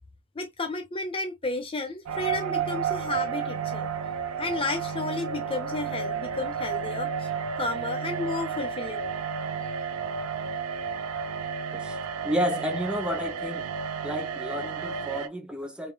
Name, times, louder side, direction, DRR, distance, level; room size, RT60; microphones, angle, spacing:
voice 1, 0.4-3.9 4.4-7.3 7.6-9.1, left 3 dB, 25° left, 0.6 m, -32 dB
sound 1, 2.1-15.3, right 6 dB, 85° right, 0.6 m, -32 dB
voice 2, 12.2-13.7 14.0-15.9, equal, 5° right, 0.8 m, -31 dB
3.7 x 3.7 x 2.2 m
head